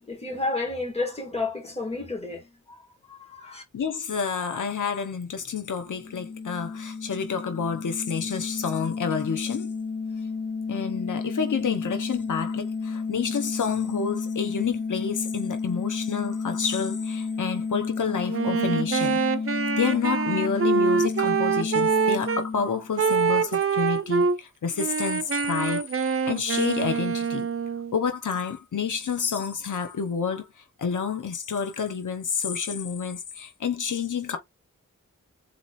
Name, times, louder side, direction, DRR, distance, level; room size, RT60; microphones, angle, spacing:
voice 1, 0.0-2.8 3.1-3.6, left 3 dB, 20° left, 2.3 m, -31 dB
voice 2, 3.7-9.7 10.7-19.2 19.8-27.5 27.9-34.4, left 6 dB, 85° left, 0.9 m, -29 dB
sound 1, 5.9-23.4, left 4 dB, 35° left, 0.6 m, -32 dB
Wind instrument woodwind instrument, 18.3-22.5 23.0-24.4 24.8-28.0, right 5 dB, 45° right, 0.5 m, -25 dB
4.2 x 3.0 x 4.1 m
wide cardioid pair, 90°, 30 cm